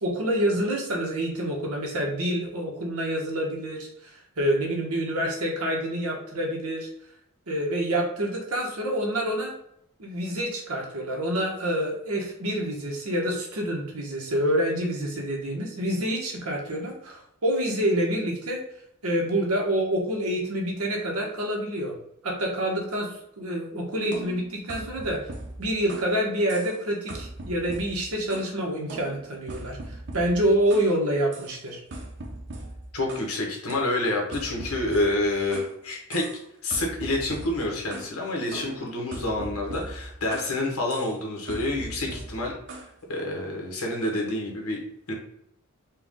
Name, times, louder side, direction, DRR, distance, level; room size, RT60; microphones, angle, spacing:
voice 1, 0.0-6.9 7.5-9.5 10.0-18.6 19.0-21.9 22.2-23.1 23.4-25.3 25.6-31.8, right 1 dB, 90° right, -1 dB, 1.2 m, -27 dB
sound 1, 24.1-26.2 26.5-26.8 27.1-28.6 28.9-30.9 31.3-31.5 31.9-33.3 33.7-35.7 36.1-36.4 36.7-38.1 38.5-40.6 40.9-41.2 41.5-42.9, right 2 dB, 55° right, 0.8 m, -40 dB
voice 2, 32.9-36.3 36.6-42.5 43.1-44.8 45.1-45.2, left 2 dB, 80° left, 0 dB, 1.3 m, -28 dB
4.6 x 2.4 x 3.6 m, 0.75 s
head